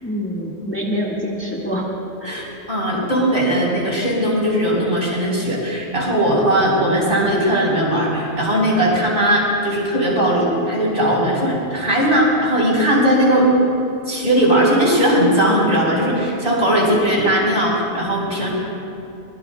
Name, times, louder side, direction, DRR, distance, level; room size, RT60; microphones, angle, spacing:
voice 1, 0.0-1.9 2.2-2.3, equal, 10° left, -5 dB, 1.7 m, -25 dB
voice 2, 2.2-13.5 14.1-18.5, right 1 dB, 45° right, -4 dB, 4.7 m, -18 dB
24.0 x 21.0 x 2.3 m, 2.8 s
omnidirectional pair, 1.2 m